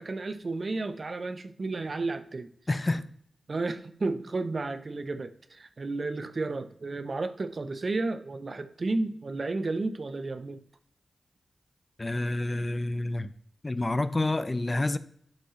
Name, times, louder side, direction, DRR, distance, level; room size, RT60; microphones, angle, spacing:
voice 1, 0.0-2.5 3.5-10.6, right 3 dB, 55° right, 11 dB, 0.7 m, -32 dB
voice 2, 2.7-3.0 12.0-13.3 13.6-15.0, left 2 dB, 35° left, 14 dB, 0.6 m, -28 dB
11.5 x 5.3 x 3.2 m, 0.64 s
cardioid pair, 40°, 0 cm